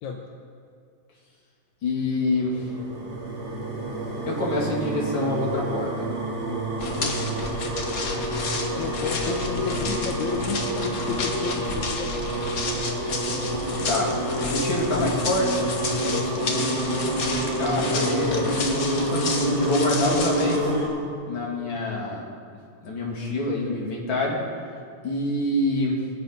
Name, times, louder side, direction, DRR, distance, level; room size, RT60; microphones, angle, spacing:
voice 1, 1.8-2.7 4.3-6.1 9.2-9.4 13.3-13.5 13.9-14.1 14.5-15.6 16.4-16.8 17.6-18.6 18.9-20.7 21.3-22.2 22.8-24.4 25.0-26.0, left 2 dB, 40° left, -3 dB, 3.1 m, -26 dB
sound 1, 2.2-20.9, right 1 dB, 55° right, 4.3 m, -28 dB
sound 2, 6.8-20.6, left 3 dB, 55° left, 0.9 m, -32 dB
voice 2, 7.0-7.3 8.7-9.4 9.6-12.3 16.0-16.7, left 6 dB, 80° left, 2 dB, 2.2 m, -33 dB
22.5 x 7.6 x 5.3 m, 2.3 s
omnidirectional pair, 3.4 m